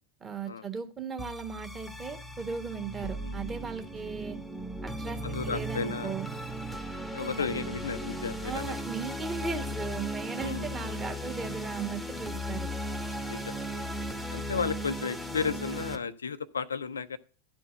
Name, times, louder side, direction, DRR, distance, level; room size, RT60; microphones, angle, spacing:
voice 1, 0.2-4.4 4.8-6.3 7.2-7.3 8.4-12.7, right 5 dB, 20° right, 5 dB, 1.5 m, -37 dB
sound 1, 1.2-16.0, equal, ahead, 1.0 m, -36 dB
voice 2, 3.0-3.6 5.2-6.1 7.1-8.7 10.4-10.7 13.3-14.0 14.3-17.2, left 5 dB, 70° left, 12 dB, 0.5 m, -34 dB
12.0 x 4.4 x 6.3 m, 0.38 s
figure-of-eight pair, 90°, 0 cm